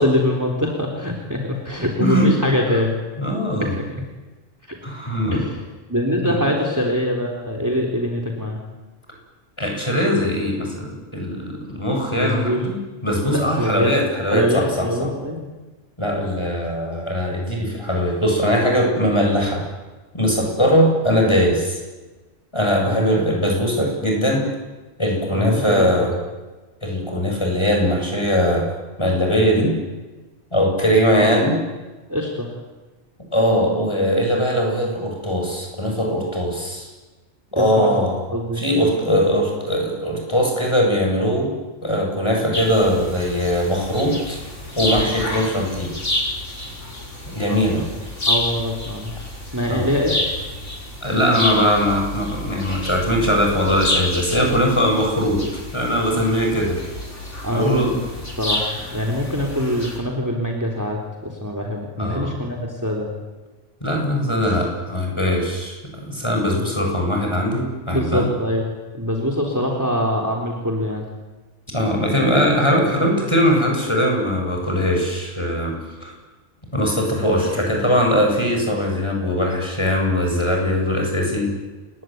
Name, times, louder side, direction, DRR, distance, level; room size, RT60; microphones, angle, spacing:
voice 1, 0.0-3.0 3.6-3.9 4.7-4.8 5.3-5.6 5.9-8.6 12.2-12.6 13.3-13.9 14.3-15.4 22.8-23.1 25.3-26.1 31.2-31.3 32.1-32.5 37.5-38.1 38.3-38.6 47.4-47.7 48.3-49.1 49.5-50.2 56.1-56.2 57.4-57.9 58.4-63.1 66.4-66.5 67.9-71.0, left 1 dB, 15° right, 1 dB, 3.7 m, -23 dB
voice 2, 3.2-3.7 4.8-5.4 6.2-6.4 9.6-12.8 13.0-15.1 16.0-19.7 20.1-21.8 22.5-24.4 25.0-26.1 26.8-28.7 29.0-29.7 30.5-31.6 33.3-36.9 37.5-38.3 38.5-41.5 41.8-44.4 44.8-45.9 47.3-47.9 49.6-49.9 51.0-55.4 55.7-56.8 57.5-57.9 62.0-62.3 63.8-68.3 71.7-75.7 76.0-76.1 76.7-81.5, equal, 20° left, 0 dB, 8.1 m, -20 dB
sound 1, 42.5-60.0, left 1 dB, 65° left, 5.8 m, -29 dB
28.5 x 21.0 x 9.5 m, 1.2 s
omnidirectional pair, 1.4 m